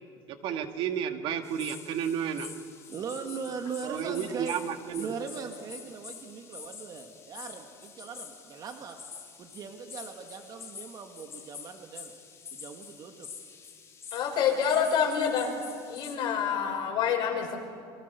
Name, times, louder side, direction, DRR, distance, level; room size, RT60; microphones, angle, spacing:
voice 1, 0.3-2.5 3.8-5.1, right 8 dB, 55° right, 7 dB, 2.1 m, -32 dB
sound 1, 1.4-16.2, left 6 dB, 30° left, 4.0 m, -47 dB
voice 2, 2.9-4.6 5.0-9.0 9.4-12.1 12.5-13.3, right 6 dB, 40° right, 5 dB, 2.0 m, -39 dB
voice 3, 14.1-15.5 15.9-17.6, left 7 dB, 50° left, 2 dB, 5.8 m, -27 dB
28.0 x 24.0 x 7.0 m, 2.4 s
cardioid pair, 130°, 10 cm